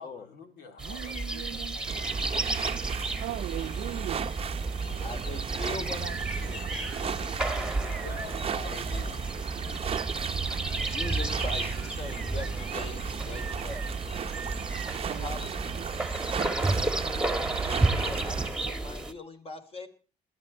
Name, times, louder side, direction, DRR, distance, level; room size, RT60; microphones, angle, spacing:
voice 1, 0.0-2.5 4.2-4.5 7.3-9.4, left 4 dB, 70° left, 4.1 m, -47 dB
sound 1, 0.8-19.1, right 2 dB, 5° right, 1.7 m, -32 dB
voice 2, 0.9-1.8 2.5-2.8 3.2-4.2 15.0-15.2, right 14 dB, 70° right, 0.7 m, -38 dB
sound 2, 1.8-18.5, right 7 dB, 35° right, 0.8 m, -35 dB
voice 3, 4.9-7.7 8.5-9.2 10.8-13.8 15.1-16.0 16.8-19.9, left 3 dB, 35° left, 3.4 m, -42 dB
20.5 x 13.5 x 4.5 m
cardioid pair, 110°, 17 cm